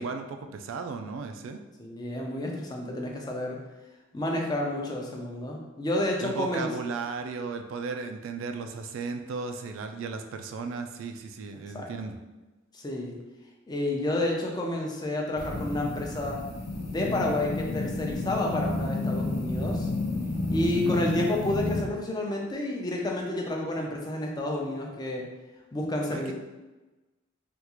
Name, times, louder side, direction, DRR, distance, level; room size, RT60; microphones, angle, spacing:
voice 1, 0.0-1.6 6.2-12.2 20.7-21.0 26.1-26.3, right 4 dB, 85° right, 6 dB, 0.3 m, -35 dB
voice 2, 1.8-3.6 4.1-6.7 11.5-11.9 12.7-13.2 13.7-16.4 16.9-19.9 20.5-25.3 25.7-26.3, left 1 dB, 20° left, 0 dB, 0.4 m, -30 dB
sound 1, 15.4-21.8, left 2 dB, 80° left, 0.6 m, -31 dB
3.5 x 2.3 x 2.9 m, 1.1 s
head